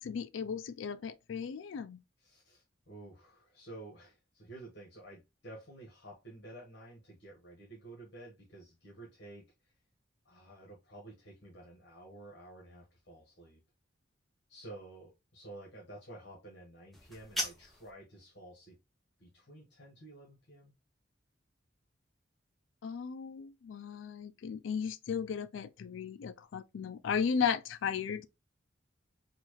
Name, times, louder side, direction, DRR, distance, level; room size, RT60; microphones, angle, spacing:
voice 1, 0.0-2.0 22.8-28.3, left 6 dB, 80° left, 0.3 m, -35 dB
voice 2, 2.2-9.7 10.2-13.6 14.5-18.8 19.2-20.7, right 2 dB, 65° left, 1.4 m, -51 dB
sound 1, 16.9-17.9, equal, ahead, 0.7 m, -38 dB
4.3 x 2.4 x 3.0 m
head